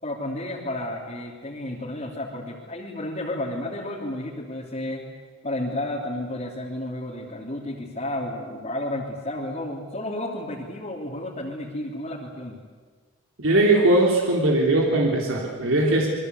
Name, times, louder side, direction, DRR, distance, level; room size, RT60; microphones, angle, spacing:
voice 1, 0.0-5.0 5.4-12.6, left 1 dB, 35° left, -4 dB, 3.1 m, -32 dB
voice 2, 13.4-16.1, right 2 dB, 80° right, -1 dB, 3.5 m, -20 dB
27.0 x 22.0 x 8.2 m, 1.5 s
head